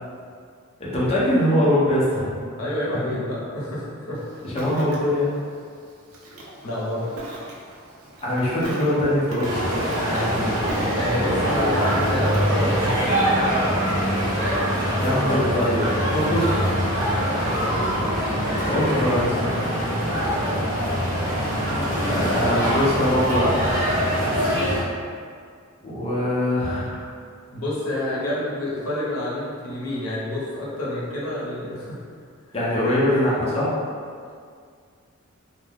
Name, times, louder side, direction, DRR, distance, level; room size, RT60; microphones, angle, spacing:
voice 1, 0.8-2.4 4.4-5.3 8.2-9.5 10.1-10.6 14.9-16.6 18.6-19.5 22.0-23.7 25.8-27.1 32.5-33.7, left 1 dB, 25° left, -8 dB, 0.6 m, -22 dB
voice 2, 2.6-4.2 6.6-7.1 8.2-8.4 10.9-13.7 16.2-16.4 17.2-17.8 22.0-22.6 27.5-32.0, left 1 dB, 90° left, -7 dB, 0.7 m, -29 dB
Ocean, 4.1-13.2, right 1 dB, 75° right, 0.5 m, -40 dB
sound 1, 9.4-24.8, equal, 35° right, 0.8 m, -23 dB
2.3 x 2.1 x 3.3 m, 2.1 s
head